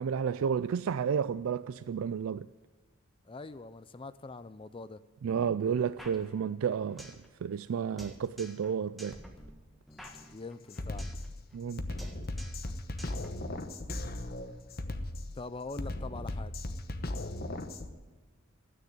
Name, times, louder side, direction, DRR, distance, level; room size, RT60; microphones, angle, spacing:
voice 1, 0.0-2.5 5.2-9.2 11.5-11.9, right 7 dB, 80° right, 0.4 m, -31 dB
voice 2, 3.2-5.0 10.3-11.1 15.3-16.5, left 3 dB, 25° left, 0.4 m, -43 dB
sound 1, 6.0-7.3 7.5-7.6 8.0-8.7 9.0-11.3 11.5-11.7 12.0-12.7 13.0-14.0, equal, ahead, 1.6 m, -49 dB
Drum kit, 10.0-10.2 10.7-17.9, left 1 dB, 45° left, 1.1 m, -37 dB
13.5 x 9.3 x 9.6 m
head